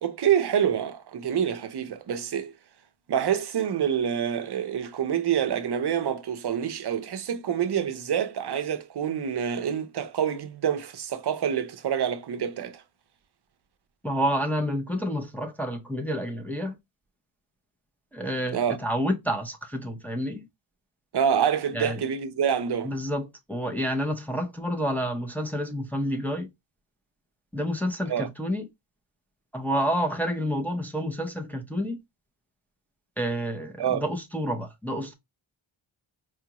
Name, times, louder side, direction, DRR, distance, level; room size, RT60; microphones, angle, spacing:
voice 1, 0.0-2.5 3.1-12.8 18.5-18.8 21.1-22.9 28.1-28.3 33.8-34.0, right 8 dB, 55° right, 0.6 m, -27 dB
voice 2, 14.0-16.8 18.1-20.4 21.7-22.0 22.8-26.5 27.5-28.7 29.5-32.0 33.2-35.1, equal, 5° left, 0.6 m, -29 dB
4.8 x 2.4 x 2.8 m
wide cardioid pair, 120°, 49 cm